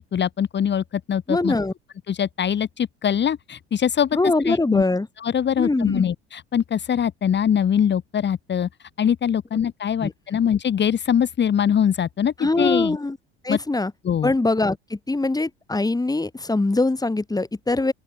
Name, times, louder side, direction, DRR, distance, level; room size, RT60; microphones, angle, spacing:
voice 1, 0.0-1.5 2.1-4.2 4.4-4.8 5.2-13.0 13.5-13.6 14.0-14.3, left 8 dB, 35° left, 3.7 m, -23 dB
voice 2, 1.3-1.7 4.1-5.1 5.6-6.1 10.0-10.1 12.4-13.2 13.4-13.9 14.2-17.9, left 2 dB, 10° left, 7.3 m, -22 dB
open air
figure-of-eight pair, 65°, 31 cm